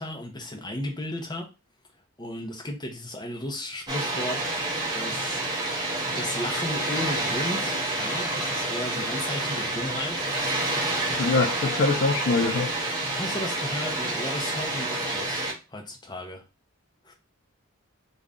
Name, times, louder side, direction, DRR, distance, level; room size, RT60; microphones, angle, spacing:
voice 1, 0.0-1.5 2.2-4.5 4.9-5.4 6.1-10.2 13.1-16.4 17.0-17.1, left 1 dB, 20° left, 0.8 m, -34 dB
Water, 3.9-15.5, right 2 dB, 20° right, 0.8 m, -28 dB
voice 2, 11.2-12.7, left 3 dB, 55° left, 0.5 m, -23 dB
3.1 x 2.6 x 3.6 m
head